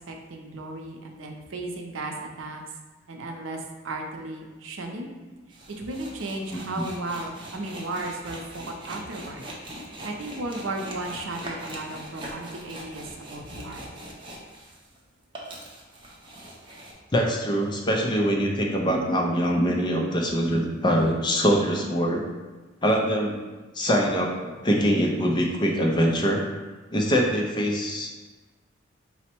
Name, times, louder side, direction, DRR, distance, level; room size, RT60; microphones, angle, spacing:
voice 1, 0.0-2.6 3.1-5.1 5.7-9.5 9.8-13.9, right 2 dB, 90° right, 2 dB, 0.6 m, -35 dB
sound 1, 5.5-15.0 15.2-16.9, right 1 dB, 25° right, 0.6 m, -41 dB
voice 2, 6.5-6.8 17.1-22.2 22.8-23.4 23.7-26.4 26.9-28.3, equal, 25° left, 0 dB, 0.5 m, -23 dB
4.1 x 2.0 x 4.4 m, 1.3 s
head